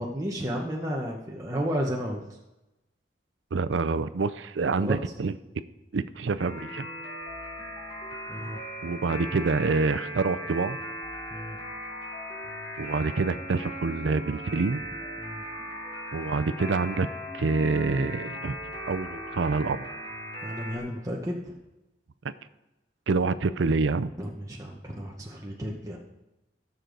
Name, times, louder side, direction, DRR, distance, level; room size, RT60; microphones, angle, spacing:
voice 1, 0.0-2.2 4.8-5.0 8.3-8.6 11.3-11.6 15.2-15.4 20.4-21.5 24.2-26.0, equal, 20° right, -2 dB, 0.9 m, -32 dB
voice 2, 3.5-5.3 5.9-6.9 8.8-10.8 12.8-14.8 16.1-17.1 17.3-18.6 18.9-19.9 23.1-24.1, right 4 dB, 85° right, 14 dB, 0.5 m, -26 dB
sound 1, 6.4-20.8, equal, 25° left, 3.7 m, -38 dB
17.5 x 6.8 x 3.9 m, 0.99 s
head